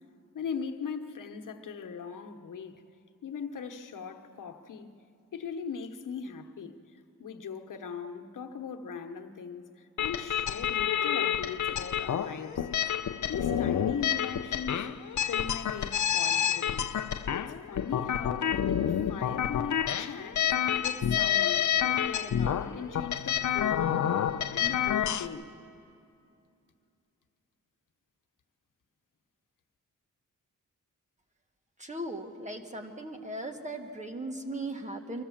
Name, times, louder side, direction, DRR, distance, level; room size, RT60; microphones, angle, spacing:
voice 1, 0.3-2.8 3.2-5.0 5.3-6.8 7.2-12.7 13.2-14.9 15.3-16.9 17.3-20.5 20.8-25.5, left 6 dB, 80° left, 1.1 m, -39 dB
sound 1, 10.0-25.3, left 9 dB, 65° left, 0.7 m, -29 dB
voice 2, 31.8-35.2, right 1 dB, 25° right, 1.7 m, -38 dB
24.5 x 15.0 x 7.3 m
wide cardioid pair, 95°, 31 cm